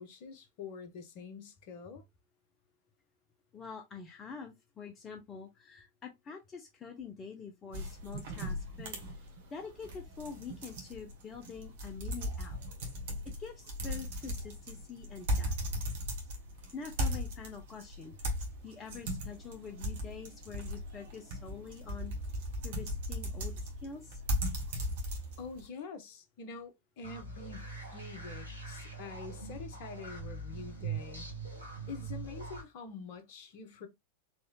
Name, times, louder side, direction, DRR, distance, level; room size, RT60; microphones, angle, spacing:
voice 1, 0.0-2.1 25.4-31.3 31.9-33.9, left 5 dB, 45° left, 1.0 m, -46 dB
voice 2, 3.5-9.2 9.5-12.6 13.2-15.6 16.7-18.1 18.6-22.1 22.6-24.2, left 6 dB, 25° left, 0.8 m, -46 dB
sound 1, 7.7-25.6, equal, 55° right, 1.4 m, -37 dB
sound 2, 27.0-32.6, right 4 dB, 90° right, 1.4 m, -42 dB
4.3 x 3.1 x 2.3 m
figure-of-eight pair, 90°, 0 cm